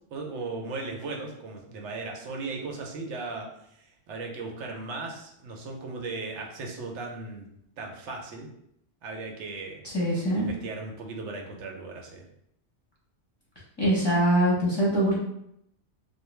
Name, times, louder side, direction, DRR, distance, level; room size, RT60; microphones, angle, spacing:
voice 1, 0.1-3.5 3.8-7.5 7.8-8.5 9.0-9.8 10.4-12.2, right 3 dB, 80° right, 1 dB, 0.9 m, -37 dB
voice 2, 9.8-10.5 13.8-15.2, right 1 dB, 25° left, -7 dB, 0.7 m, -23 dB
2.4 x 2.1 x 3.0 m, 0.75 s
omnidirectional pair, 1.2 m